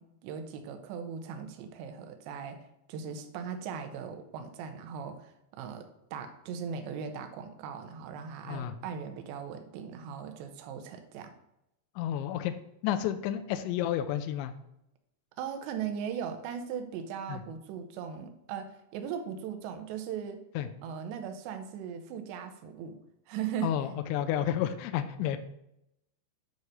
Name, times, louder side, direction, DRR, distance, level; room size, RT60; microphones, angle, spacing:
voice 1, 0.0-2.6 2.9-11.3 15.4-20.4 20.8-23.0 23.3-23.7, right 7 dB, 75° right, 6 dB, 2.9 m, -38 dB
voice 2, 12.0-12.5 12.8-14.5 17.3-17.4 20.6-20.7 23.6-25.4, left 11 dB, 85° left, 9 dB, 2.6 m, -31 dB
8.4 x 4.7 x 6.5 m, 0.83 s
omnidirectional pair, 5.9 m